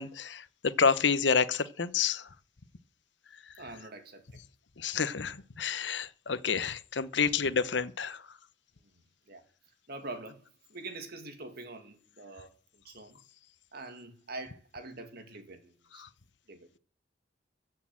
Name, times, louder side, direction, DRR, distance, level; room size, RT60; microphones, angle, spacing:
voice 1, 0.0-2.3 3.3-3.5 4.8-8.4 15.9-16.1, left 5 dB, 70° left, 0.9 m, -29 dB
voice 2, 3.6-4.4 9.3-9.4 9.9-13.2 13.7-16.1 16.5-16.7, right 2 dB, 60° right, 2.2 m, -45 dB
14.5 x 6.6 x 7.6 m
head